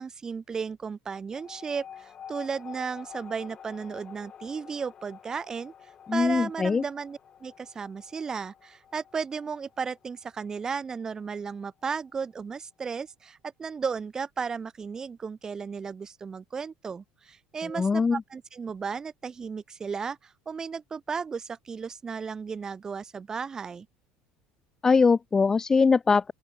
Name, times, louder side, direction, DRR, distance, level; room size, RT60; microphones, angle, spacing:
voice 1, 0.0-23.9, right 5 dB, 25° right, 2.0 m, -35 dB
sound 1, 1.3-12.2, left 8 dB, 35° left, 6.0 m, -49 dB
voice 2, 6.1-6.8 17.6-18.2 24.8-26.3, left 4 dB, 20° left, 0.6 m, -22 dB
open air
supercardioid pair, 115°, 3 cm